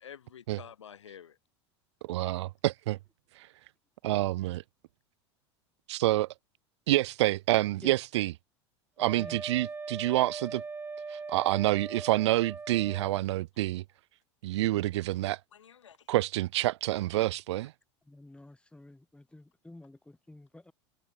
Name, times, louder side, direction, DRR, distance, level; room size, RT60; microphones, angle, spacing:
voice 1, 0.0-1.4 2.2-2.4 15.5-16.1, left 8 dB, 85° left, 2.1 m, -49 dB
voice 2, 2.0-3.0 4.0-4.6 5.9-6.3 6.9-8.3 9.0-10.6 11.1-13.8 14.4-15.4 16.1-17.7, right 16 dB, 70° right, 1.0 m, -28 dB
Wind instrument woodwind instrument, 9.0-13.2, right 4 dB, 15° right, 0.7 m, -40 dB
voice 3, 18.0-20.7, left 2 dB, 5° left, 3.7 m, -51 dB
hypercardioid pair, 85°, 15 cm